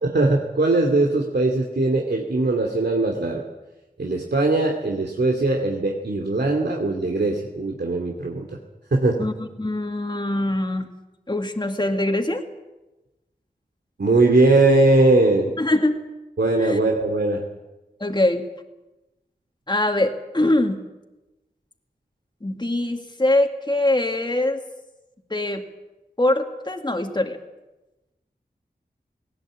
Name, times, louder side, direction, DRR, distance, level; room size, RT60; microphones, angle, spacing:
voice 1, 0.0-3.4 4.0-8.5 8.9-9.3 14.0-15.5 16.4-17.4, right 2 dB, 75° right, 1 dB, 2.5 m, -20 dB
voice 2, 9.6-10.9 11.3-12.5 15.6-16.0 16.6-16.8 18.0-18.5 19.7-20.8 22.4-24.6 25.3-25.7 26.2-27.4, left 1 dB, 25° left, 3 dB, 2.0 m, -23 dB
19.0 x 18.0 x 8.8 m, 1.0 s
wide cardioid pair, 50°, 17 cm